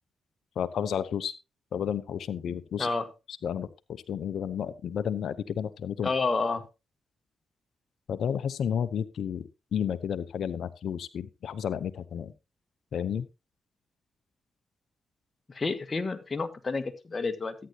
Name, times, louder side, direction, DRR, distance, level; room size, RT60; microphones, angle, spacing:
voice 1, 0.6-1.3 1.7-2.9 3.4-6.1 8.1-12.3 12.9-13.3, left 8 dB, 70° left, 12 dB, 0.8 m, -32 dB
voice 2, 2.8-3.1 6.0-6.6 15.5-17.5, left 3 dB, 35° left, 8 dB, 1.9 m, -29 dB
13.5 x 9.5 x 2.9 m, 0.26 s
supercardioid pair, 50°, 0 cm